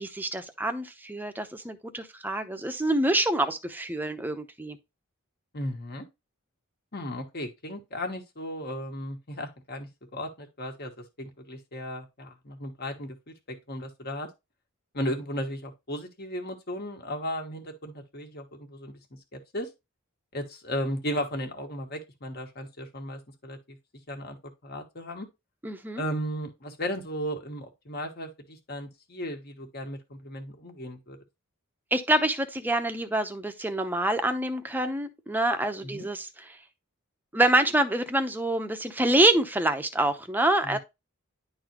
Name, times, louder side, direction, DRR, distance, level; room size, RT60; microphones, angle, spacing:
voice 1, 0.0-4.8 25.6-26.0 31.9-36.3 37.3-40.8, right 1 dB, 10° right, 0.7 m, -26 dB
voice 2, 5.5-6.0 6.9-14.3 14.9-19.0 19.3-19.7 20.3-23.8 24.1-24.4 24.6-25.3 26.0-31.2 35.8-36.1 40.6-40.8, equal, 50° left, 1.6 m, -35 dB
10.5 x 4.0 x 2.9 m
head